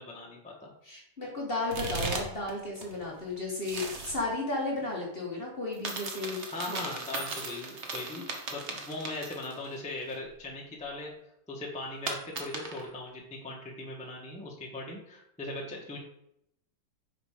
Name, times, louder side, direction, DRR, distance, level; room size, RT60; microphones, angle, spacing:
voice 1, 0.0-0.7 6.5-11.1 11.5-16.0, left 2 dB, 5° left, -3 dB, 0.9 m, -39 dB
voice 2, 0.8-6.8, left 2 dB, 30° left, -3 dB, 1.4 m, -34 dB
sound 1, 1.7-2.5 2.8-4.2 5.7-9.7 10.1-10.2 12.1-12.9, right 3 dB, 45° right, 1.0 m, -37 dB
6.1 x 5.0 x 4.9 m, 0.77 s
omnidirectional pair, 2.4 m